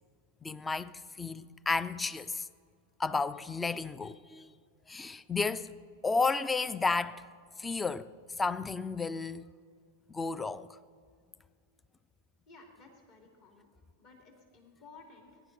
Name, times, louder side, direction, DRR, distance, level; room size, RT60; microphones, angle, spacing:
voice 1, 0.4-2.5 3.0-4.5 4.9-5.7 6.0-7.2 7.6-9.5 10.1-10.7, left 4 dB, 10° left, 0.4 m, -32 dB
voice 2, 12.5-13.7 14.0-15.4, left 3 dB, 50° left, 3.0 m, -55 dB
21.0 x 10.0 x 4.0 m
figure-of-eight pair, 90°, 0 cm